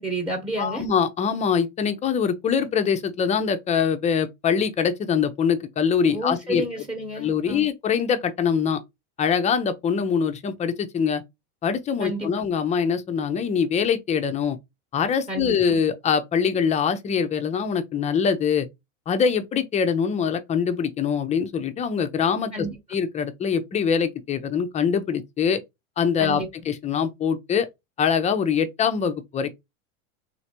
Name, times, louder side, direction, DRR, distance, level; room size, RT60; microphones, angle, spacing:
voice 1, 0.0-0.8 6.1-7.6 12.0-12.3 15.3-15.6 22.5-22.7 26.2-26.5, right 1 dB, 15° right, 1.0 m, -30 dB
voice 2, 0.6-6.7 7.2-8.8 9.2-11.2 11.6-14.6 14.9-18.7 19.1-25.6 26.0-27.7 28.0-29.5, left 6 dB, 20° left, 0.4 m, -23 dB
3.2 x 2.5 x 2.7 m
hypercardioid pair, 100°, 41 cm